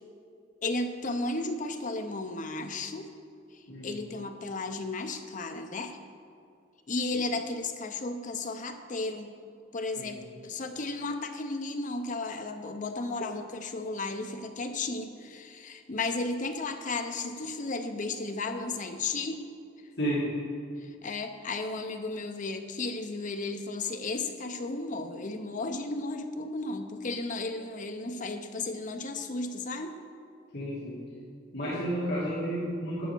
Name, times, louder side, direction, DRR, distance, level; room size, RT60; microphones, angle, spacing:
voice 1, 0.6-3.1 3.5-6.0 6.9-9.3 9.7-19.4 20.8-30.0, left 3 dB, 40° left, 7 dB, 0.6 m, -34 dB
voice 2, 20.0-20.3 30.5-31.0 31.5-33.1, equal, 55° left, -8 dB, 2.2 m, -31 dB
11.0 x 7.0 x 4.5 m, 2.4 s
head